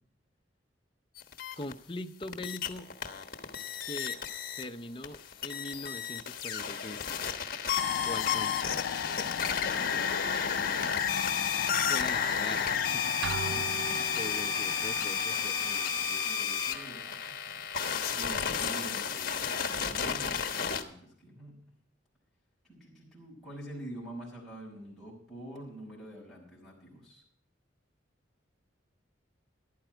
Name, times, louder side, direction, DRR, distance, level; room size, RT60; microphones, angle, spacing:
sound 1, 1.2-1.7 2.2-4.7 5.0-20.8, left 7 dB, 50° left, 1.2 m, -32 dB
voice 1, 1.6-2.9 3.8-4.2 4.6-7.0 8.0-8.5 11.1-11.3 11.8-13.1 13.5-13.8 14.2-15.6, left 2 dB, 30° left, 6 dB, 0.6 m, -41 dB
sound 2, 7.8-16.6, left 7 dB, 85° left, 0.4 m, -37 dB
voice 2, 9.1-10.1 13.4-14.3 14.9-21.6 22.6-27.2, right 1 dB, ahead, -6 dB, 5.4 m, -47 dB
sound 3, 13.2-14.7, right 6 dB, 65° right, 0.4 m, -38 dB
14.0 x 12.0 x 4.4 m, 0.64 s
head